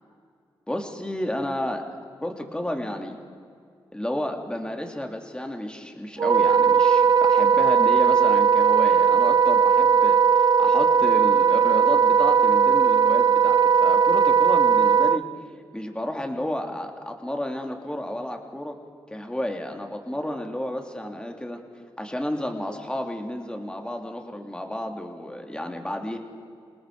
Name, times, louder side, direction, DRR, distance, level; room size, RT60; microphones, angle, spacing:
voice 1, 0.7-1.8 2.2-3.2 3.9-15.2 15.7-18.8 19.1-21.6 22.0-26.2, left 1 dB, 10° left, 3 dB, 2.8 m, -31 dB
Wind instrument woodwind instrument, 6.2-15.2, right 6 dB, 45° right, 0.5 m, -18 dB
28.0 x 19.0 x 4.9 m, 2.3 s
cardioid pair, 60°, 10 cm